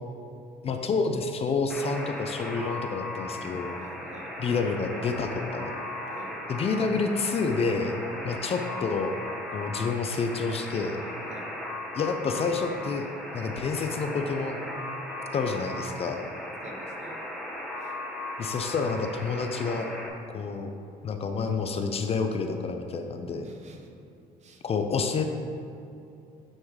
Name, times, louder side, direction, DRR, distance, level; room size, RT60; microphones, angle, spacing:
voice 1, 0.6-3.8 4.4-5.7 6.5-9.1 9.5-11.0 11.9-13.1 13.3-14.6 15.3-16.2 18.4-19.9 20.3-20.7 21.0-23.5 24.6-25.2, left 4 dB, 35° left, 6 dB, 0.4 m, -29 dB
Alarm, 1.7-20.1, left 1 dB, ahead, 0.8 m, -37 dB
voice 2, 3.7-4.3 6.1-6.3 11.3-11.5 16.6-17.2 17.8-17.9 23.4-24.0 24.4-24.6, right 3 dB, 40° right, 3 dB, 0.8 m, -48 dB
8.8 x 3.2 x 3.6 m, 2.6 s
cardioid pair, 110°, 17 cm